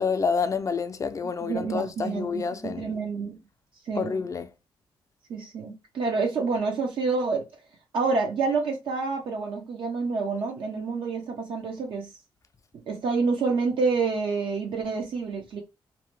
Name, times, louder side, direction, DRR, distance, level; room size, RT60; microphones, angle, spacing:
voice 1, 0.0-3.0 4.0-4.5, left 5 dB, 35° left, 0.3 m, -28 dB
voice 2, 1.4-3.4 3.9-4.1 5.3-7.4 7.9-12.1 12.7-15.6, right 4 dB, 70° right, 0.6 m, -28 dB
2.7 x 2.1 x 3.0 m
cardioid pair, 80°, 9 cm